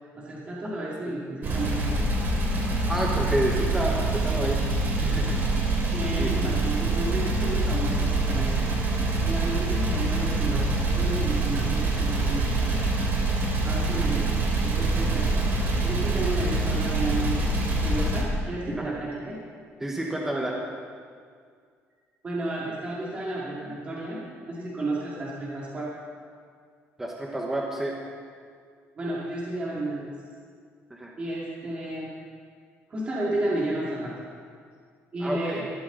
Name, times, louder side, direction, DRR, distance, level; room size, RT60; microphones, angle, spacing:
voice 1, 0.0-2.0 5.9-8.5 8.9-13.0 13.6-14.3 14.6-15.4 15.8-17.5 17.8-19.4 22.2-25.9 29.0-30.2 31.2-32.1 32.9-34.1 35.1-35.7, right 1 dB, 25° right, -6 dB, 2.5 m, -32 dB
sound 1, 1.4-18.2, right 2 dB, 45° right, 3.0 m, -25 dB
voice 2, 2.9-5.4 6.1-6.3 18.8-19.0 19.8-20.6 27.0-28.0 30.9-31.1 35.2-35.6, right 1 dB, 10° right, -1 dB, 1.3 m, -29 dB
20.5 x 13.5 x 4.0 m, 2.1 s
cardioid pair, 160°, 5 cm